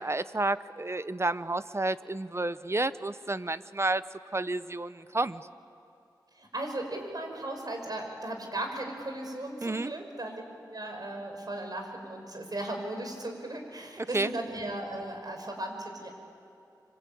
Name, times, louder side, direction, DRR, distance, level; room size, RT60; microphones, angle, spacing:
voice 1, 0.0-4.0 4.3-5.4 9.6-9.9 14.0-14.3, right 2 dB, 35° right, 14 dB, 0.9 m, -30 dB
voice 2, 6.4-10.4 10.7-16.1, right 1 dB, 60° right, 3 dB, 5.6 m, -37 dB
26.0 x 26.0 x 8.7 m, 2.7 s
cardioid pair, 40°, 8 cm